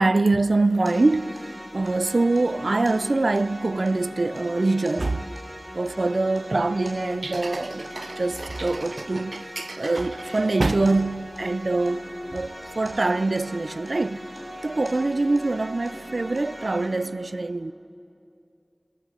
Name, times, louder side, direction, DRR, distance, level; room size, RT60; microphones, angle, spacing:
voice 1, 0.0-1.5 1.7-5.3 5.7-14.3 14.6-17.7, right 2 dB, 70° right, 0.6 m, -24 dB
sound 1, 0.9-16.9, equal, 15° right, 7.0 m, -40 dB
23.0 x 19.5 x 9.0 m
wide cardioid pair, 50°, 0 cm